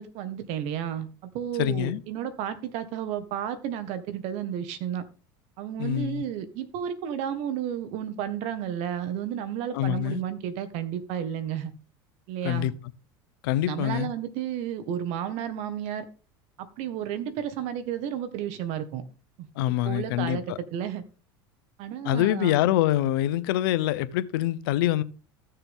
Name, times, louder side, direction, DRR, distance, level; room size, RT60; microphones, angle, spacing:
voice 1, 0.0-5.0 5.6-11.7 12.3-12.7 13.6-16.1 16.6-19.0 19.4-19.5 19.8-20.4 20.7-21.0 21.8-22.5, right 9 dB, 65° right, 1.6 m, -32 dB
voice 2, 1.6-2.0 5.8-6.2 9.7-10.2 12.4-12.7 13.4-14.1 19.6-20.6 22.0-25.0, left 14 dB, 75° left, 0.8 m, -25 dB
14.5 x 6.9 x 3.6 m
supercardioid pair, 95°, 12 cm